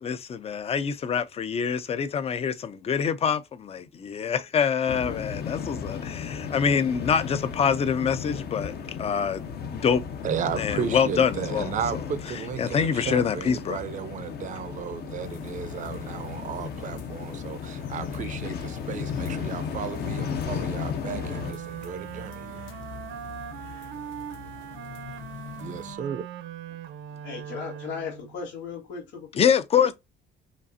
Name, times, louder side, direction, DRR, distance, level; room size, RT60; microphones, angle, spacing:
voice 1, 0.0-8.7 9.0-10.0 10.6-12.0 12.3-13.8 29.4-29.9, left 7 dB, 30° left, 0.4 m, -25 dB
sound 1, 4.9-21.5, left 6 dB, 55° left, 0.8 m, -34 dB
voice 2, 10.2-22.6 25.6-26.2, right 8 dB, 40° right, 0.5 m, -34 dB
sound 2, 15.2-26.0, left 8 dB, 90° left, 0.8 m, -45 dB
Wind instrument woodwind instrument, 21.0-28.4, right 9 dB, 75° right, 0.7 m, -40 dB
voice 3, 27.2-29.5, left 6 dB, 70° left, 1.9 m, -36 dB
5.1 x 2.4 x 2.6 m
cardioid pair, 165°, 20 cm